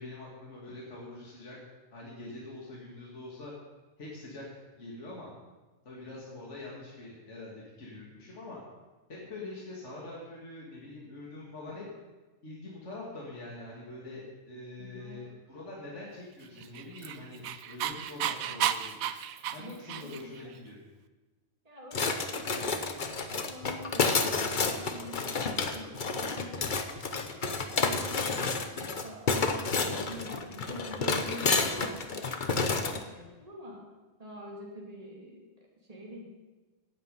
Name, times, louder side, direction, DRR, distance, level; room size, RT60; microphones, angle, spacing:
voice 1, 0.0-1.6 1.9-3.5 4.0-4.4 4.7-5.3 5.8-8.6 9.1-11.9 12.4-19.0 19.5-20.8, left 2 dB, 55° left, -4 dB, 2.6 m, -44 dB
voice 2, 14.8-15.2 19.6-20.4 21.6-23.1 23.4-27.2 27.6-32.0 32.5-33.9 34.2-36.3, equal, 25° right, -2 dB, 2.8 m, -45 dB
Dog, 16.6-20.4, right 10 dB, 85° right, 1.1 m, -33 dB
sound 1, 21.9-33.0, left 4 dB, 40° left, 1.0 m, -30 dB
17.0 x 8.5 x 5.5 m, 1.2 s
omnidirectional pair, 1.4 m